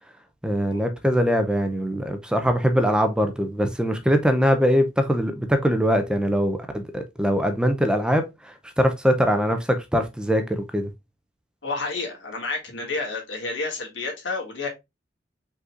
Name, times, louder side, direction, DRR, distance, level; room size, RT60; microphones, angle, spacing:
voice 1, 0.4-10.9, equal, 5° right, 0.5 m, -22 dB
voice 2, 11.6-14.7, left 3 dB, 80° left, 2.1 m, -30 dB
5.4 x 4.0 x 2.5 m
head